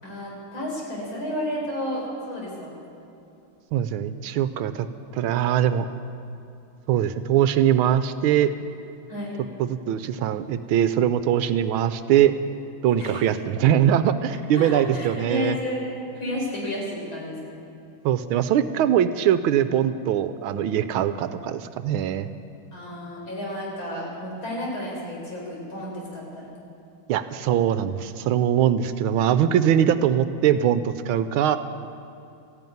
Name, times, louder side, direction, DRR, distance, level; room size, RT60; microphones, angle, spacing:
voice 1, 0.0-2.7 9.1-9.4 13.0-13.2 14.5-15.9 16.1-17.4 22.7-26.5, left 1 dB, 65° left, -3 dB, 5.2 m, -31 dB
voice 2, 3.7-4.9 5.1-5.9 6.9-8.5 9.6-12.3 12.8-15.6 18.0-22.3 27.1-31.6, right 10 dB, 80° right, 12 dB, 1.4 m, -22 dB
14.0 x 11.0 x 9.2 m, 2.7 s
omnidirectional pair, 2.4 m